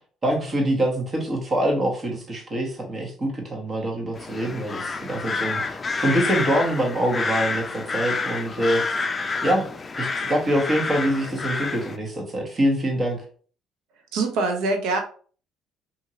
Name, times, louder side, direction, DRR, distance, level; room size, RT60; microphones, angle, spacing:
voice 1, 0.2-8.8 9.4-9.7 10.0-13.2, right 1 dB, 35° right, 1 dB, 1.2 m, -25 dB
sound 1, 4.1-12.0, left 4 dB, 30° left, 0.4 m, -28 dB
voice 2, 14.1-15.0, right 3 dB, 75° right, 4 dB, 0.7 m, -23 dB
2.8 x 2.6 x 2.8 m, 0.43 s
supercardioid pair, 70°, 0 cm